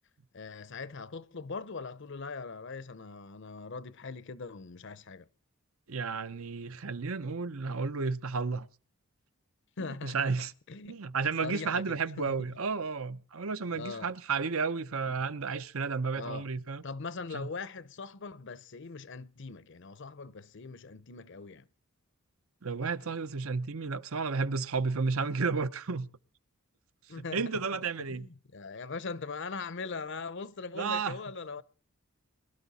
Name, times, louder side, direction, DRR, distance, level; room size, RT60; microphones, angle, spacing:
voice 1, 0.3-5.3 9.8-10.2 10.7-11.0 11.4-12.3 13.7-14.1 16.1-16.5 16.8-21.7 27.1-27.6 28.1-31.6, left 4 dB, 55° left, 0.7 m, -41 dB
voice 2, 5.9-8.7 10.0-10.5 10.9-16.8 17.3-17.5 22.6-26.1 27.3-28.3 30.7-31.2, right 4 dB, 70° right, 0.8 m, -32 dB
22.5 x 12.5 x 4.1 m
head